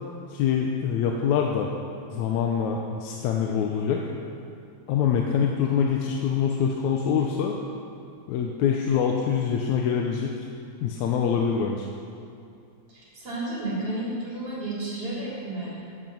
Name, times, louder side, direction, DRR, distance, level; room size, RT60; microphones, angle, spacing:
voice 1, 0.3-1.7 2.1-4.1 4.9-7.6 8.3-10.4 10.8-11.9, left 7 dB, 85° left, 1 dB, 2.2 m, -25 dB
voice 2, 12.9-15.7, right 2 dB, 50° right, -7 dB, 4.4 m, -32 dB
15.0 x 10.5 x 5.4 m, 2.5 s
omnidirectional pair, 3.3 m